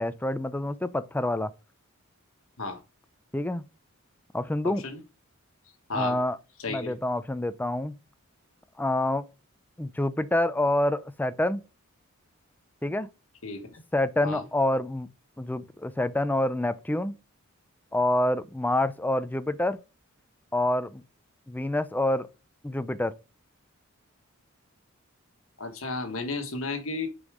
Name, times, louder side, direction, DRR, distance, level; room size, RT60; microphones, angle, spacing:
voice 1, 0.0-1.5 3.3-3.6 4.3-4.8 5.9-6.4 6.7-7.9 8.8-9.2 9.8-11.6 12.8-13.1 13.9-15.1 15.4-17.2 17.9-19.8 20.5-21.0 21.5-22.3 22.6-23.1, left 1 dB, 10° left, 0.5 m, -27 dB
voice 2, 4.6-5.0 5.9-6.2 6.6-7.0 13.4-13.8 14.2-14.4 25.6-27.1, left 3 dB, 70° left, 1.5 m, -33 dB
6.8 x 5.4 x 4.9 m
head